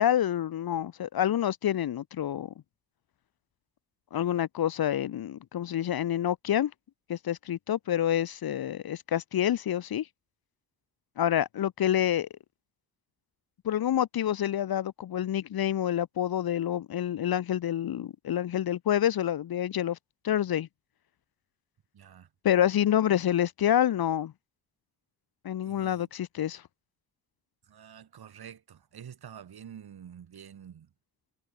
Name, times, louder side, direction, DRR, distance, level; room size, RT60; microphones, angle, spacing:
voice 1, 0.0-2.5 4.1-6.7 7.1-10.1 11.2-12.3 13.6-20.0 20.2-20.7 22.4-24.3 25.4-26.6, left 11 dB, 65° left, 1.0 m, -27 dB
voice 2, 21.9-22.3 25.6-26.1 27.7-30.9, right 8 dB, 70° right, 7.0 m, -48 dB
cardioid pair, 95°, 39 cm